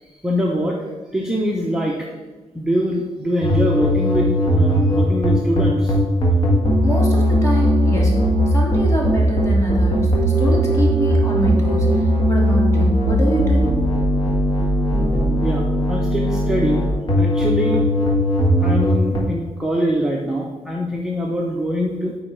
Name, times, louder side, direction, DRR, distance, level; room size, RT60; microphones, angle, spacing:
voice 1, 0.2-0.8 1.1-2.0 2.5-5.9 15.4-16.9 17.2-17.8 18.6-22.2, equal, 5° right, -2 dB, 0.6 m, -23 dB
sound 1, 3.4-19.2, equal, 40° left, 1.6 m, -18 dB
voice 2, 6.8-8.1 8.5-13.8, right 1 dB, 25° left, -2 dB, 1.7 m, -25 dB
9.7 x 4.0 x 4.5 m, 1.3 s
wide cardioid pair, 175°, 11 cm